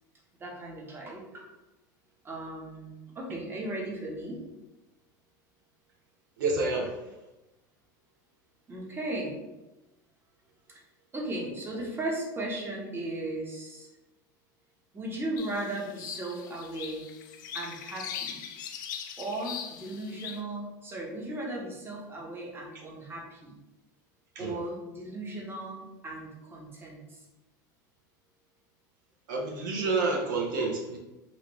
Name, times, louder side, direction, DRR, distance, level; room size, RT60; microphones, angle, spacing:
voice 1, 0.4-1.4 2.2-4.4 8.7-9.4 11.1-13.9 14.9-17.0 17.5-18.4 19.2-23.6 24.4-27.2, right 2 dB, 20° right, -2 dB, 0.9 m, -36 dB
voice 2, 6.4-6.9 24.4-24.5 29.3-31.0, right 3 dB, 85° right, -1 dB, 0.7 m, -28 dB
sound 1, 15.4-20.4, left 8 dB, 80° left, 0.4 m, -41 dB
2.9 x 2.5 x 3.0 m, 1.0 s
supercardioid pair, 105°, 10 cm